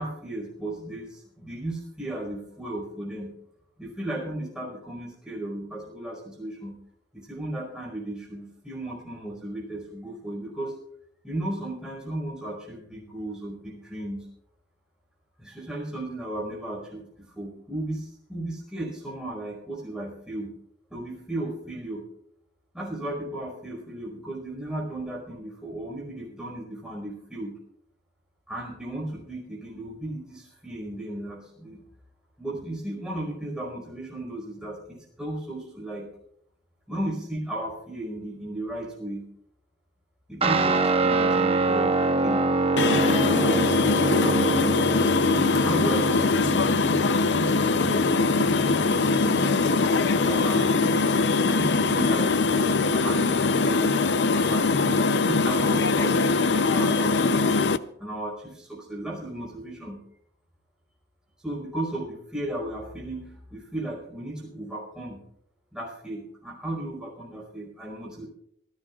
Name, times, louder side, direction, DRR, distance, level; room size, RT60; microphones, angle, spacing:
voice 1, 0.0-3.3 3.8-6.8 7.1-10.8 11.2-14.3 15.4-20.5 20.9-22.0 22.7-27.6 28.5-31.8 32.4-36.1 36.9-39.3 40.3-42.5 43.2-44.9 45.5-49.9 50.2-51.0 51.4-54.0 54.3-57.5 58.0-60.0 61.4-65.2 65.7-68.3, right 1 dB, 5° right, -2 dB, 4.8 m, -35 dB
Guitar, 40.4-49.2, right 3 dB, 35° right, 0.8 m, -26 dB
sound 1, 42.8-57.8, left 4 dB, 80° left, 0.6 m, -22 dB
25.5 x 14.5 x 2.4 m, 0.69 s
head